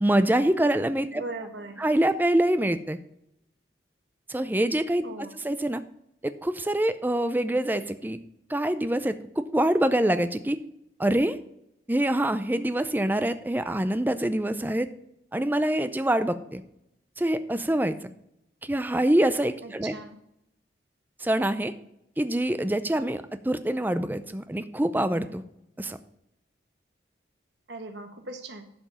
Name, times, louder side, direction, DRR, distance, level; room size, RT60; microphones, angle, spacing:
voice 1, 0.0-1.2 1.8-3.0 4.3-5.0 5.3-5.8 6.2-8.2 8.5-10.6 11.0-11.4 11.9-14.9 15.3-16.6 17.2-18.0 18.6-19.9 21.2-21.7 22.2-25.4 25.8-26.0, right 1 dB, 10° right, 11 dB, 0.5 m, -25 dB
voice 2, 1.1-1.8 5.0-5.3 19.6-20.2 27.7-28.7, right 2 dB, 70° right, 6 dB, 1.3 m, -39 dB
11.0 x 5.1 x 5.6 m, 0.79 s
head